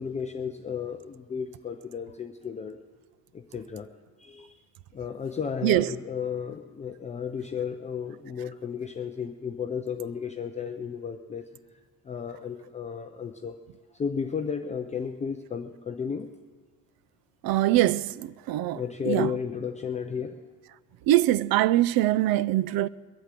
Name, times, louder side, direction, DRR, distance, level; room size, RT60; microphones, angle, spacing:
voice 1, 0.0-2.8 3.3-3.9 4.2-4.6 4.9-11.4 12.1-13.6 13.9-16.3 18.7-20.4 22.4-22.6, left 7 dB, 20° left, 0.4 m, -33 dB
voice 2, 17.4-18.8 19.1-19.3 21.1-22.9, right 15 dB, 70° right, 0.5 m, -23 dB
22.0 x 8.4 x 7.5 m
cardioid pair, 175°, 38 cm